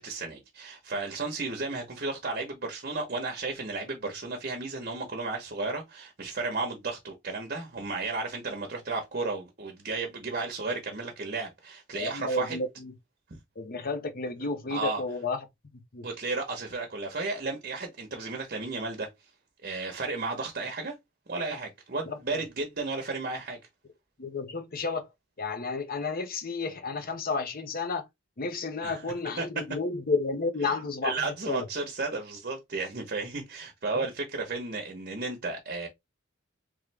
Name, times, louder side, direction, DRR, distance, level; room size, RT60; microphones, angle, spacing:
voice 1, 0.0-12.6 14.7-15.0 16.0-19.1 19.6-20.9 21.3-23.6 28.8-29.0 29.4-29.5 30.6-30.8 31.0-35.9, right 3 dB, 50° right, 1.0 m, -33 dB
voice 2, 11.9-12.9 13.6-15.4 15.9-16.1 22.1-22.4 24.2-25.1 25.4-28.1 28.4-31.2 31.5-31.6 34.0-34.1, left 3 dB, 50° left, 0.8 m, -31 dB
3.5 x 3.1 x 3.4 m
head